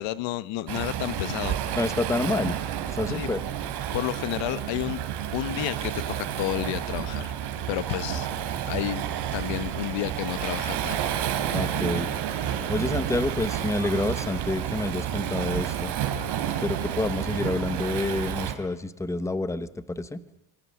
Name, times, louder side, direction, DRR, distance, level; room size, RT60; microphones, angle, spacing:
voice 1, 0.0-1.8 3.1-3.3 3.9-5.0 5.3-7.3 7.7-8.3 8.7-9.1 9.3-11.0, left 15 dB, 65° left, 16 dB, 1.1 m, -31 dB
Waves surf, 0.7-18.5, right 10 dB, 55° right, 3.4 m, -30 dB
voice 2, 1.7-2.6 2.9-3.4 11.5-12.1 12.7-15.9 16.6-20.2, left 2 dB, 5° left, 14 dB, 1.0 m, -28 dB
26.5 x 23.5 x 7.7 m, 0.83 s
cardioid pair, 130°, 49 cm